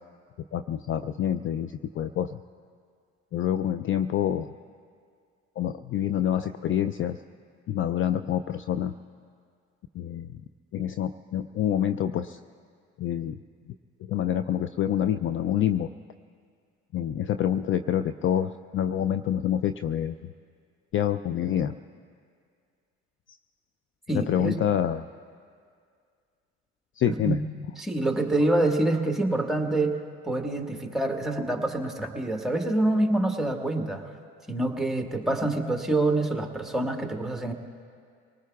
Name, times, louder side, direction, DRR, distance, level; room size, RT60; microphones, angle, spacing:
voice 1, 0.5-2.4 3.3-4.5 5.6-7.2 7.7-8.9 9.9-10.4 10.7-12.4 13.0-13.4 14.1-15.9 16.9-20.1 20.9-21.8 24.1-25.1 27.0-27.4, left 10 dB, 40° left, 11 dB, 0.4 m, -27 dB
voice 2, 24.1-24.6 27.1-27.4 27.8-30.0 30.3-34.0 34.5-37.5, right 2 dB, ahead, 3 dB, 1.6 m, -26 dB
25.0 x 19.0 x 2.4 m, 2.2 s
hypercardioid pair, 65°, 31 cm